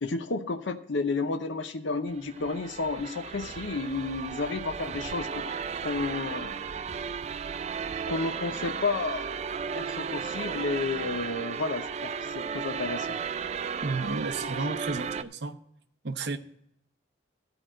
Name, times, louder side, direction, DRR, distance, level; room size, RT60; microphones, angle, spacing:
voice 1, 0.0-5.5 5.8-6.6 8.1-9.4 9.7-13.2 14.4-14.5, left 3 dB, 75° left, 7 dB, 0.7 m, -31 dB
sound 1, 2.1-15.2, right 6 dB, 35° right, 0.3 m, -35 dB
voice 2, 13.8-15.6 16.0-16.4, right 3 dB, 55° right, 8 dB, 0.7 m, -32 dB
13.5 x 4.8 x 7.5 m, 0.75 s
head